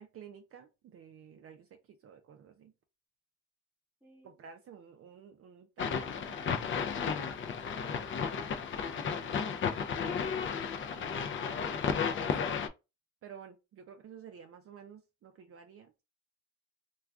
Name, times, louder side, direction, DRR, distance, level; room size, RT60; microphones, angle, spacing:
voice 1, 0.0-2.7 4.2-7.0 10.9-11.3 12.2-12.3 13.2-16.0, right 7 dB, 50° right, 5 dB, 0.5 m, -52 dB
voice 2, 4.0-4.4 7.0-9.6 9.9-10.1, right 1 dB, 5° right, 2 dB, 1.0 m, -55 dB
sound 1, 5.8-12.7, left 6 dB, 40° left, 0.4 m, -33 dB
2.3 x 2.3 x 3.4 m, 0.27 s
cardioid pair, 90°, 30 cm